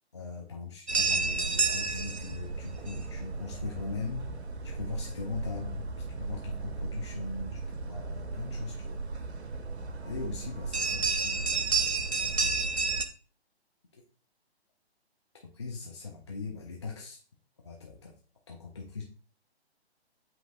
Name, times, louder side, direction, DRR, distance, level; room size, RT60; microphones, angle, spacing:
voice 1, 0.1-4.3 4.6-5.9 6.2-9.0 10.0-11.8 12.1-12.7 15.5-17.2 17.6-18.1 18.5-19.0, left 4 dB, 25° left, -1 dB, 0.4 m, -40 dB
sound 1, 0.9-13.1, right 4 dB, 80° right, 0.7 m, -32 dB
8.2 x 2.8 x 2.2 m, 0.40 s
figure-of-eight pair, 135°, 33 cm